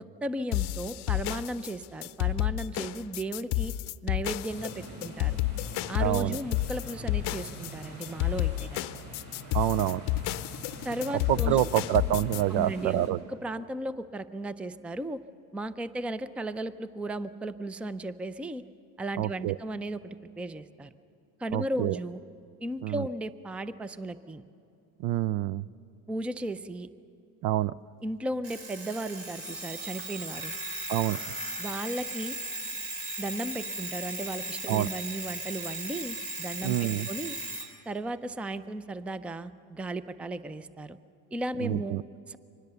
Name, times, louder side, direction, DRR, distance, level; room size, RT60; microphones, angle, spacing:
voice 1, 0.0-3.7 4.0-5.4 5.9-9.0 10.8-11.7 12.5-15.2 15.5-18.6 19.0-20.9 21.4-22.2 22.6-24.4 26.1-26.9 28.0-30.5 31.6-32.4 33.2-37.4 37.9-41.0 41.3-42.0 42.3-42.4, right 1 dB, 5° right, 15 dB, 0.4 m, -35 dB
sound 1, 0.5-12.4, left 17 dB, 60° left, 0.7 m, -30 dB
sound 2, 4.5-13.1, right 1 dB, 35° right, 6.4 m, -44 dB
voice 2, 6.0-6.4 9.5-10.0 11.3-13.2 19.2-19.6 21.5-22.0 22.8-23.0 25.0-25.7 27.4-27.7 30.9-31.2 34.7-34.9 36.6-37.1 41.6-42.0, right 14 dB, 60° right, 21 dB, 0.6 m, -27 dB
Alarm, 28.4-37.7, right 2 dB, 80° right, 3.2 m, -37 dB
24.5 x 19.5 x 6.9 m, 2.6 s
supercardioid pair, 90°, 46 cm